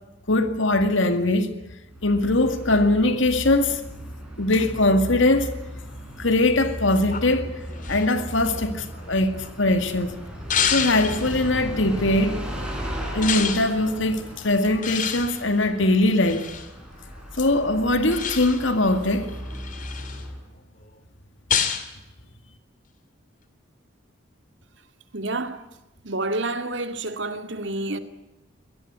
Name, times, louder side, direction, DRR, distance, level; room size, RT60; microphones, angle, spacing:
voice 1, 0.3-1.5 2.0-3.8 4.4-5.5 6.2-7.6 7.9-10.2 10.7-12.4 13.1-16.5 17.4-19.3, left 2 dB, 75° left, 2.2 m, -21 dB
Bus, 1.9-20.5, equal, 5° right, 6.9 m, -36 dB
sound 1, 7.1-9.7 10.5-11.5 13.2-13.7 14.8-16.7 18.1-18.8 19.3-20.2 21.5-21.9, left 8 dB, 40° left, 2.7 m, -29 dB
voice 2, 25.1-25.6 26.0-28.0, right 2 dB, 65° right, 2.4 m, -28 dB
24.0 x 19.0 x 9.7 m
head